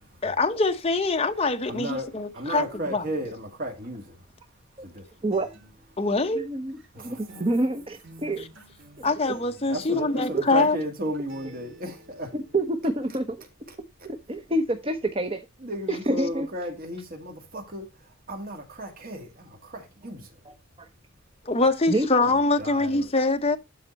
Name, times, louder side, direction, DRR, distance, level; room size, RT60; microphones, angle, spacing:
voice 1, 0.2-2.6 2.9-3.0 6.0-6.4 9.0-10.8 21.5-23.6, left 3 dB, 30° left, 0.8 m, -24 dB
voice 2, 1.7-4.2 4.8-5.1 6.9-7.5 9.7-12.3 13.7-13.8 15.6-17.9 18.3-20.3 22.2-22.3 22.6-23.1, equal, 45° right, 1.9 m, -34 dB
Acoustic guitar, 5.3-13.3, equal, 60° right, 3.1 m, -52 dB
voice 3, 6.3-8.5 9.0-9.1 10.3-10.4 12.3-13.4 14.0-15.4 15.9-16.5 20.4-20.9 21.9-22.1, right 1 dB, 25° right, 0.9 m, -27 dB
12.0 x 4.2 x 4.1 m
head